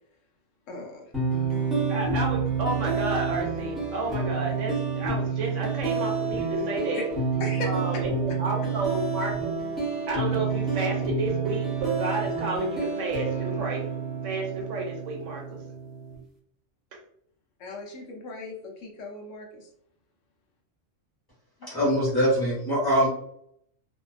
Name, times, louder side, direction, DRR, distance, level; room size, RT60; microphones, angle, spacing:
voice 1, 0.7-1.1 6.9-7.0 7.4-8.0 17.6-18.5 18.8-19.7 21.6-21.7, left 2 dB, 75° left, 0 dB, 1.0 m, -37 dB
sound 1, 1.1-16.2, right 4 dB, ahead, 0.6 m, -29 dB
voice 2, 1.9-7.1 7.7-9.6 10.1-13.9 14.2-15.6 16.9-17.0, right 2 dB, 70° right, 1 dB, 0.9 m, -31 dB
voice 3, 21.6-23.1, equal, 15° left, -8 dB, 1.2 m, -23 dB
2.6 x 2.2 x 2.3 m, 0.68 s
omnidirectional pair, 1.4 m